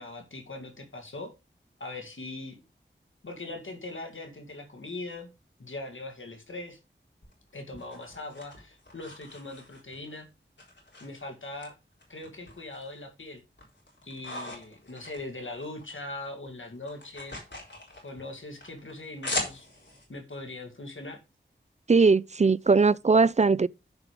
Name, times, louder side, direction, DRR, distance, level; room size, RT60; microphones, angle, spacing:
voice 1, 0.0-1.3 1.8-2.6 3.2-5.3 5.6-6.8 7.5-10.3 11.0-11.7 12.1-13.4 14.0-17.4 18.0-19.7 20.1-21.2, left 2 dB, 90° left, 2.3 m, -40 dB
sound 1, 7.2-10.1 10.6-11.7 12.0-13.0 13.4-16.0 16.2-20.1, left 1 dB, 65° left, 4.2 m, -40 dB
voice 2, 21.9-23.7, right 4 dB, 35° right, 0.4 m, -20 dB
10.5 x 5.0 x 5.1 m
wide cardioid pair, 40°, 20 cm